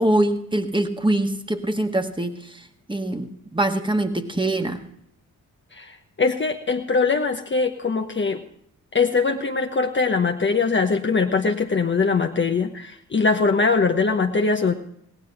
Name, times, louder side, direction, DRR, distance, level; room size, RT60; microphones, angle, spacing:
voice 1, 0.0-2.4 2.9-4.8, right 1 dB, 10° right, 7 dB, 1.6 m, -23 dB
voice 2, 5.7-8.4 8.9-14.7, left 4 dB, 25° left, 5 dB, 1.0 m, -22 dB
17.5 x 10.5 x 5.9 m, 0.71 s
hypercardioid pair, 40°, 44 cm